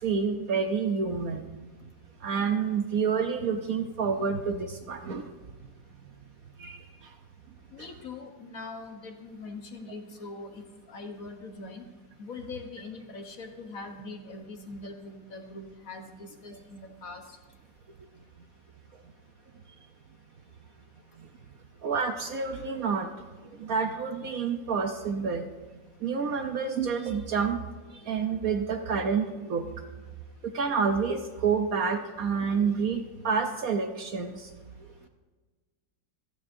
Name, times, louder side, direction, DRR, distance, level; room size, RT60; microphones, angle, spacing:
voice 1, 0.0-1.4 2.2-5.3 6.6-6.8 7.8-7.9 16.5-16.6 21.8-23.1 23.6-25.5 26.0-27.6 28.1-29.7 30.4-34.5, right 5 dB, 60° right, 6 dB, 1.0 m, -28 dB
voice 2, 7.7-11.8 12.2-17.2, left 3 dB, 55° left, 5 dB, 1.3 m, -42 dB
25.5 x 9.3 x 2.6 m, 1.4 s
omnidirectional pair, 2.0 m